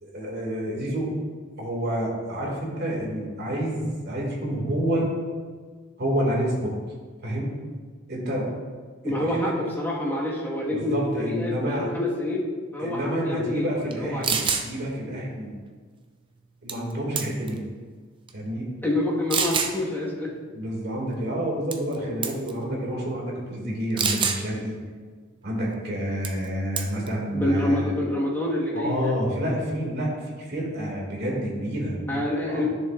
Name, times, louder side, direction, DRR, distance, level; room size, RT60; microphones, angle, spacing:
voice 1, 0.0-1.1 1.6-5.1 6.0-6.7 7.2-7.5 8.1-8.5 9.0-9.5 10.7-11.9 12.8-15.5 16.6-17.6 18.3-18.7 20.5-24.8 25.4-28.0 28.7-30.1 30.4-32.2 32.5-32.7, equal, 55° right, -3 dB, 2.1 m, -28 dB
voice 2, 9.0-12.5 12.7-13.7 14.0-14.4 18.8-20.3 27.3-29.1 32.1-32.7, left 1 dB, 10° left, -4 dB, 1.4 m, -27 dB
sound 1, 13.9-14.0 14.2-14.7 16.7-16.9 17.2-17.6 18.3-18.4 19.3-19.7 21.7-22.0 22.2-22.5 24.0-24.4 26.2-26.4 26.8-27.1, right 6 dB, 25° right, 0.5 m, -25 dB
11.0 x 6.9 x 2.4 m, 1.5 s
head